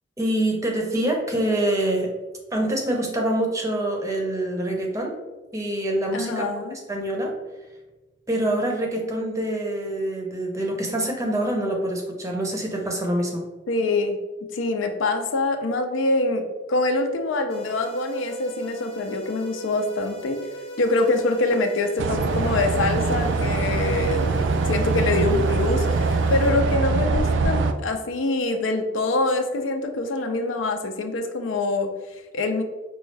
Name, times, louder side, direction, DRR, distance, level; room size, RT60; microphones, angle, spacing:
voice 1, 0.2-2.1 2.5-5.1 5.5-6.4 6.7-7.3 8.3-13.5, right 1 dB, 15° right, 1 dB, 0.6 m, -25 dB
voice 2, 6.1-6.8 13.7-14.2 14.5-20.4 20.8-32.6, left 2 dB, 85° left, 6 dB, 0.5 m, -25 dB
sound 1, 17.5-26.5, right 1 dB, 30° left, 0.4 m, -39 dB
sound 2, 22.0-27.7, right 3 dB, 70° right, 0.3 m, -23 dB
5.1 x 2.3 x 3.2 m, 1.1 s
head